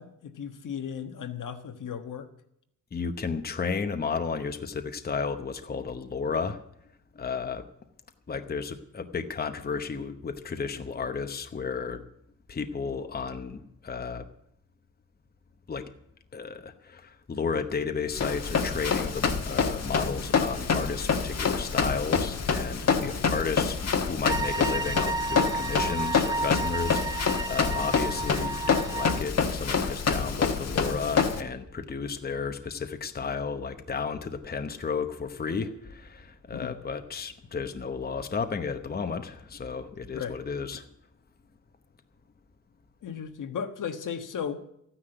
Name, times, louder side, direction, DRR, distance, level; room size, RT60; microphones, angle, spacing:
voice 1, 0.0-2.3 23.0-23.2 36.5-36.7 40.1-40.4 43.0-44.6, left 7 dB, 75° left, 7 dB, 1.3 m, -36 dB
voice 2, 2.9-6.6 7.1-7.6 8.3-12.0 12.5-14.2 15.7-15.9 16.3-40.8, left 5 dB, 30° left, 8 dB, 0.9 m, -33 dB
Run, 18.1-31.4, left 5 dB, 55° left, 1.4 m, -27 dB
sound 1, 24.2-29.2, right 2 dB, 15° right, 0.5 m, -32 dB
14.0 x 10.0 x 7.8 m, 0.75 s
wide cardioid pair, 135°, 32 cm